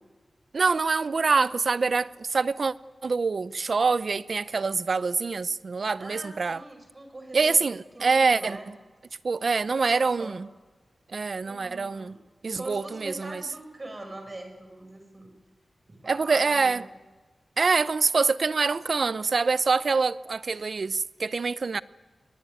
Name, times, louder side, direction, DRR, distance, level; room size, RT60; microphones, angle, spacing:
voice 1, 0.5-2.7 3.0-6.6 7.3-8.6 9.2-10.5 11.1-12.2 12.4-13.4 16.1-16.8 17.6-21.8, right 4 dB, 65° right, 0.7 m, -25 dB
voice 2, 6.0-8.7 10.0-10.4 11.4-12.2 12.5-15.3 15.9-16.9, right 2 dB, 35° right, 6.3 m, -42 dB
22.0 x 21.5 x 9.4 m
wide cardioid pair, 65°, 0 cm